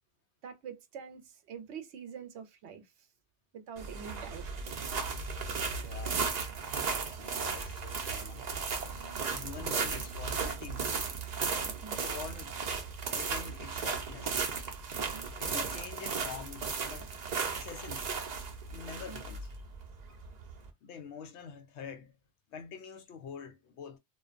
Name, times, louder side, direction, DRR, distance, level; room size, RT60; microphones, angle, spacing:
voice 1, 0.4-3.1 3.5-4.5 8.8-9.2 11.7-12.0 15.0-15.7 18.9-19.2, right 7 dB, 70° right, 0.9 m, -47 dB
sound 1, 3.8-20.7, right 5 dB, 50° right, 0.5 m, -35 dB
voice 2, 5.7-6.3 7.2-8.4 9.3-11.1 12.0-12.6 13.1-14.4 15.4-17.1 17.5-18.1 18.7-19.5 20.8-22.1 22.5-24.0, left 6 dB, 70° left, 0.8 m, -46 dB
2.5 x 2.2 x 2.4 m
omnidirectional pair, 1.2 m